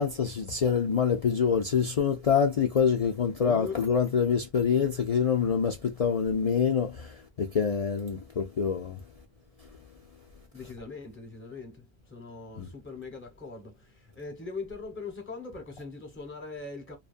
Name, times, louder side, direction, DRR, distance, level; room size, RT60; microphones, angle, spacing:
voice 1, 0.0-9.0 12.6-12.7, left 7 dB, 50° left, 0.4 m, -26 dB
voice 2, 3.4-3.8 10.5-11.8 12.1-17.0, left 3 dB, 10° left, 1.0 m, -41 dB
2.7 x 2.4 x 2.3 m
omnidirectional pair, 1.1 m